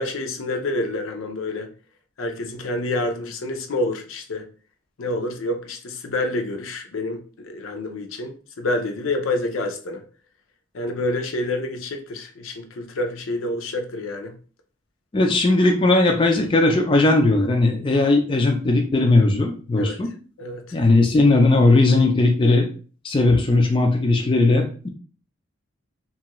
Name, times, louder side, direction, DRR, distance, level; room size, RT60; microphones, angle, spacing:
voice 1, 0.0-1.7 2.2-4.5 5.0-10.0 10.7-14.3 19.8-20.0 20.4-20.8, left 2 dB, 80° left, 0.5 m, -28 dB
voice 2, 15.1-20.1 20.7-22.7 23.0-24.9, left 2 dB, 25° left, 0.3 m, -18 dB
2.6 x 2.4 x 2.9 m
head